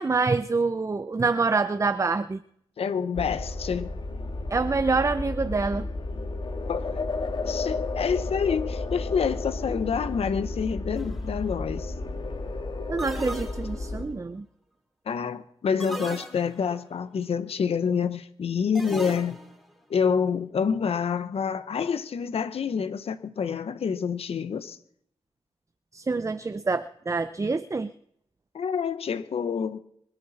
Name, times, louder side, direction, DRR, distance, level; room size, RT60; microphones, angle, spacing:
voice 1, 0.0-2.4 4.5-5.9 12.9-14.4 25.9-27.9, right 4 dB, 30° right, 0.7 m, -26 dB
voice 2, 2.8-3.9 6.7-7.0 7.4-11.9 15.1-19.4 19.9-24.8 28.5-29.8, left 6 dB, 75° left, 1.1 m, -27 dB
sound 1, 3.1-14.1, left 2 dB, 50° left, 2.0 m, -32 dB
sound 2, 11.0-11.3 13.0-14.0 15.8-16.8 18.8-19.7, right 1 dB, ahead, 3.4 m, -38 dB
25.0 x 10.0 x 4.3 m
cardioid pair, 60°, 10 cm